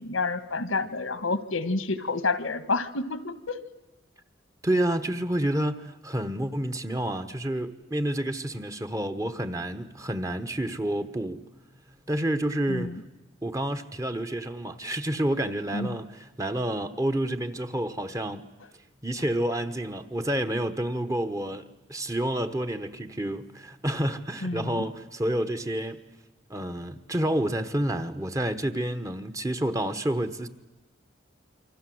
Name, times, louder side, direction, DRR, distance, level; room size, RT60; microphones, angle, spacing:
voice 1, 0.0-3.6 12.7-13.0 15.7-15.9 24.4-24.9, left 3 dB, 90° left, 1.8 m, -29 dB
voice 2, 4.6-11.4 12.1-13.0 13.4-18.4 19.0-21.6 21.9-26.1 26.5-30.5, right 1 dB, 15° right, 1.1 m, -29 dB
28.0 x 25.0 x 7.9 m
head